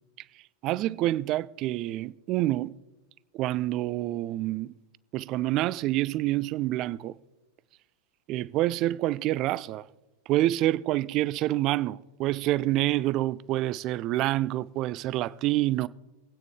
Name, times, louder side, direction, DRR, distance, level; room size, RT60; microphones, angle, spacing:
voice 1, 0.6-2.7 3.3-4.7 5.1-7.2 8.3-9.8 10.3-15.9, right 15 dB, 40° right, 0.4 m, -27 dB
23.5 x 9.0 x 3.7 m
figure-of-eight pair, 90°, 0 cm